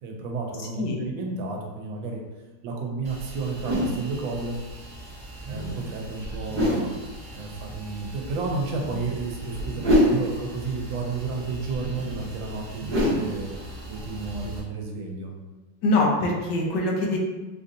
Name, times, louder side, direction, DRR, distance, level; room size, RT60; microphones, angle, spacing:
voice 1, 0.0-2.2 2.6-4.6 5.5-15.3, right 3 dB, 90° right, 1 dB, 1.4 m, -32 dB
sound 1, 3.0-14.6, equal, 35° right, 1.1 m, -29 dB
voice 2, 15.8-17.2, left 2 dB, 75° left, -1 dB, 1.3 m, -23 dB
4.9 x 2.6 x 2.6 m, 1.2 s
omnidirectional pair, 2.0 m